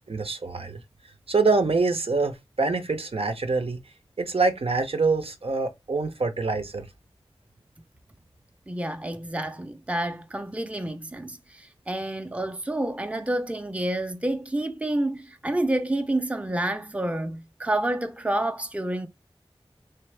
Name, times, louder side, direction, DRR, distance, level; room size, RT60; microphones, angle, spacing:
voice 1, 0.1-0.8 1.3-3.8 4.2-6.9, right 3 dB, 75° right, 0.7 m, -25 dB
voice 2, 8.7-19.1, right 1 dB, 15° right, 0.5 m, -29 dB
3.7 x 3.4 x 3.3 m
wide cardioid pair, 50°, 10 cm